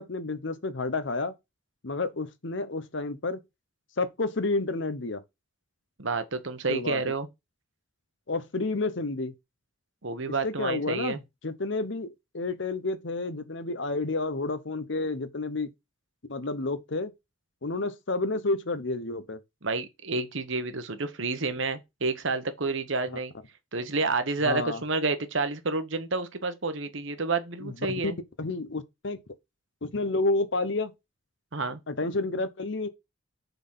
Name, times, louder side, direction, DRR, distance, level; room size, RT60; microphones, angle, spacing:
voice 1, 0.0-1.3 1.8-3.4 4.0-5.2 6.7-7.0 8.3-9.3 10.4-15.7 16.3-17.1 17.6-19.4 24.4-24.8 27.6-27.7 28.0-28.1 28.4-29.2 29.8-30.9 31.9-32.9, left 3 dB, 60° left, 0.9 m, -30 dB
voice 2, 6.0-7.3 10.0-11.2 19.6-23.3 23.7-28.2 31.5-31.8, right 3 dB, 60° right, 1.2 m, -29 dB
7.0 x 4.1 x 5.5 m
head